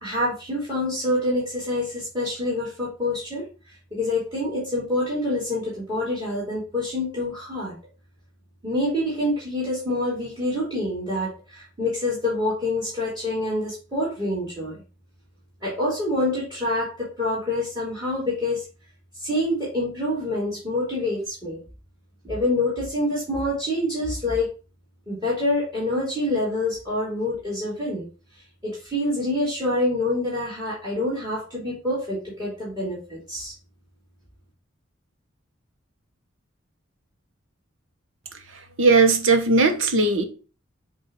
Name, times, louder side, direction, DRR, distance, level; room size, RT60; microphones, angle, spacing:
voice 1, 0.0-3.5 3.9-7.7 8.6-14.8 15.6-18.6 19.2-21.6 22.2-24.5 25.1-28.1 28.6-33.5, left 1 dB, 20° right, -6 dB, 2.8 m, -26 dB
voice 2, 38.5-40.2, right 3 dB, 80° right, 6 dB, 1.1 m, -18 dB
7.9 x 2.7 x 4.6 m, 0.33 s
head